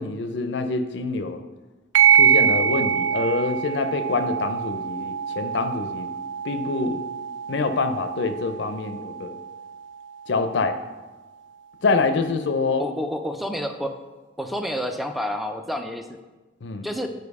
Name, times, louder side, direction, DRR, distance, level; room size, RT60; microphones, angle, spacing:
voice 1, 0.0-1.4 2.1-6.1 6.4-7.1 7.5-9.4 10.3-10.8 11.8-12.8 16.6-16.9, left 3 dB, 70° left, 9 dB, 0.5 m, -26 dB
sound 1, 1.9-10.9, right 8 dB, 80° right, 0.4 m, -24 dB
voice 2, 12.8-14.0 14.4-16.2 16.8-17.1, equal, ahead, 6 dB, 0.3 m, -29 dB
5.2 x 4.6 x 4.7 m, 1.2 s
head